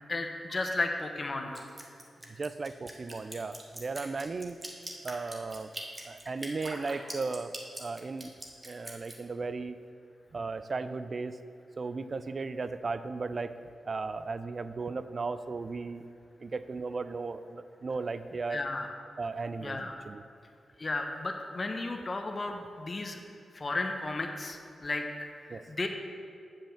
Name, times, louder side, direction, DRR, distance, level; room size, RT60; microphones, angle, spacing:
voice 1, 0.1-1.7 18.5-18.9 19.6-19.9 20.8-23.2 23.5-25.0 25.4-25.9, left 2 dB, 45° left, 4 dB, 0.9 m, -34 dB
Drip, 1.5-9.2, right 1 dB, 25° right, 1.6 m, -42 dB
voice 2, 2.4-4.6 5.0-5.7 6.0-7.5 7.8-8.3 8.6-9.8 10.3-11.4 11.8-13.6 13.8-16.0 16.4-18.6 19.2-20.2 25.5-25.6, right 4 dB, 55° right, 12 dB, 0.4 m, -36 dB
7.0 x 5.6 x 7.1 m, 2.4 s
supercardioid pair, 40°, 0 cm